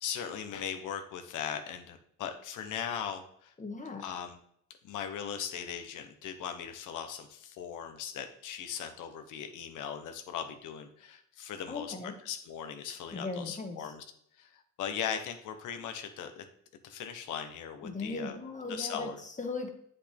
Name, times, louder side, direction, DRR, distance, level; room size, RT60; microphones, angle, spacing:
voice 1, 0.0-3.5 4.0-4.4 4.8-14.0 14.4-16.4 16.8-18.4 18.7-19.2, left 8 dB, 85° left, 6 dB, 1.0 m, -39 dB
voice 2, 3.6-4.0 11.7-12.1 13.1-13.9 17.8-19.7, left 3 dB, 25° left, 4 dB, 1.4 m, -38 dB
8.2 x 5.5 x 3.5 m, 0.68 s
cardioid pair, 90°, 30 cm